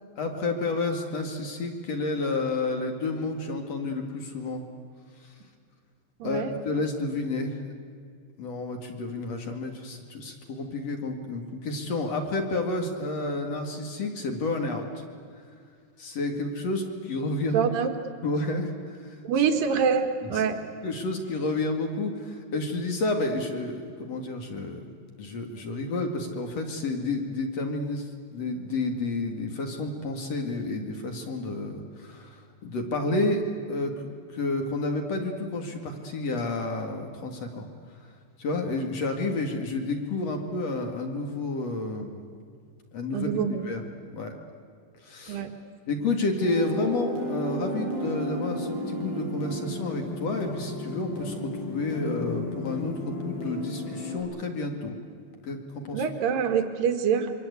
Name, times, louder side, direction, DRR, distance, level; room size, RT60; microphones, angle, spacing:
voice 1, 0.2-4.6 6.2-7.6 8.4-14.9 16.0-17.7 18.2-19.2 20.2-20.5 20.8-24.8 25.2-28.1 28.3-37.7 38.4-42.3 42.9-43.3 43.6-43.9 44.1-44.3 45.0-45.4 45.9-54.9 55.4-56.0, left 2 dB, 45° left, 4 dB, 2.3 m, -30 dB
voice 2, 6.2-6.5 17.5-17.9 19.2-20.6 43.1-43.7 45.3-45.5 55.9-57.3, right 7 dB, 60° right, 6 dB, 2.6 m, -25 dB
sound 1, 46.4-54.2, left 1 dB, 70° left, 10.5 m, -33 dB
27.0 x 24.0 x 8.3 m, 2.2 s
omnidirectional pair, 5.6 m